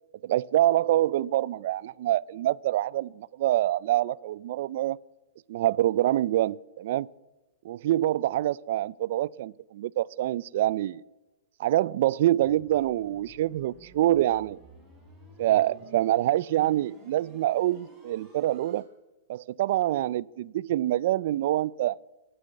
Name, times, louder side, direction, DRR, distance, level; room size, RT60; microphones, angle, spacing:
voice 1, 0.2-5.0 5.5-7.1 7.6-11.0 11.6-14.6 15.4-18.8 19.3-22.0, right 14 dB, 55° right, 0.3 m, -26 dB
sound 1, 12.4-18.8, right 1 dB, 5° right, 3.8 m, -53 dB
11.0 x 9.2 x 8.1 m
supercardioid pair, 160°, 0 cm